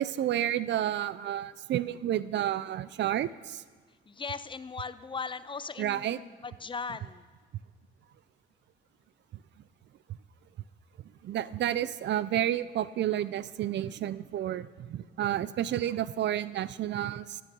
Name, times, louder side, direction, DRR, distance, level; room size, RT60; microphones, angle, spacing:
voice 1, 0.0-3.6 5.8-6.2 11.2-17.4, right 12 dB, 60° right, 17 dB, 0.5 m, -30 dB
voice 2, 4.1-7.2, left 5 dB, 25° left, 15 dB, 0.5 m, -38 dB
14.5 x 9.5 x 5.4 m, 1.4 s
cardioid pair, 90°, 20 cm